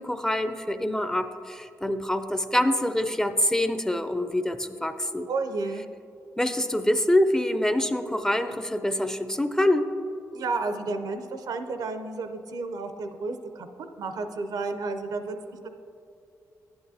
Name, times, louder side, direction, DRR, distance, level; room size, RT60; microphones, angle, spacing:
voice 1, 0.0-5.3 6.4-9.9, left 1 dB, 10° left, 9 dB, 0.4 m, -25 dB
voice 2, 5.3-5.9 10.3-13.7 14.0-15.7, right 3 dB, 80° right, 8 dB, 0.6 m, -32 dB
10.5 x 8.7 x 2.7 m, 2.6 s
cardioid pair, 65°, 7 cm